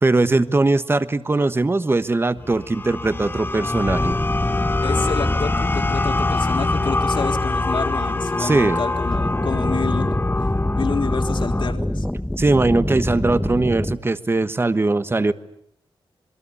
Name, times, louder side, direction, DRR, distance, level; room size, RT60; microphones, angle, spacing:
voice 1, 0.0-4.2 8.4-8.8 12.4-15.3, right 2 dB, 25° right, 13 dB, 1.3 m, -20 dB
sound 1, 2.4-11.7, left 2 dB, 25° left, 1.2 m, -24 dB
sound 2, 3.8-8.1 9.1-13.9, left 1 dB, 5° left, 1.2 m, -26 dB
voice 2, 4.8-10.1 10.7-12.1, left 5 dB, 65° left, 5 dB, 3.6 m, -29 dB
27.0 x 22.5 x 9.8 m, 0.74 s
wide cardioid pair, 105°, 9 cm